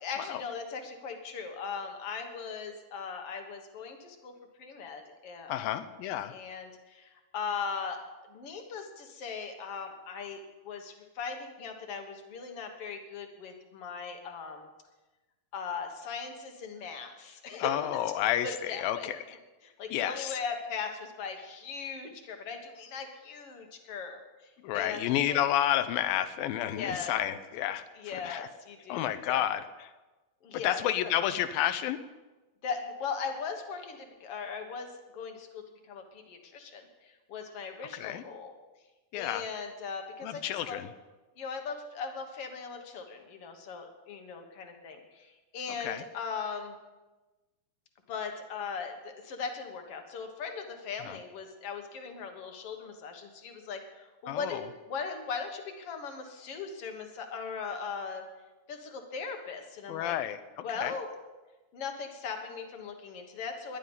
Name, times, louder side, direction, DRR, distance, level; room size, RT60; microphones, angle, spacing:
voice 1, 0.0-5.8 6.3-8.0 8.3-14.7 15.5-17.9 18.4-19.1 19.8-25.4 26.8-27.1 28.0-29.4 30.4-30.8 32.6-38.5 39.1-40.8 41.4-46.7 48.1-58.3 58.7-60.1 60.6-61.1 61.7-63.8, left 5 dB, 55° left, 4 dB, 1.7 m, -39 dB
voice 2, 5.5-6.4 17.5-19.4 19.9-20.4 24.6-28.5 28.9-29.9 30.6-32.0 37.9-38.2 39.1-39.5 40.2-40.9 45.8-46.0 51.0-51.2 54.3-54.7 59.9-60.9, left 11 dB, 80° left, 12 dB, 2.3 m, -31 dB
19.5 x 11.0 x 5.5 m, 1.1 s
omnidirectional pair, 4.5 m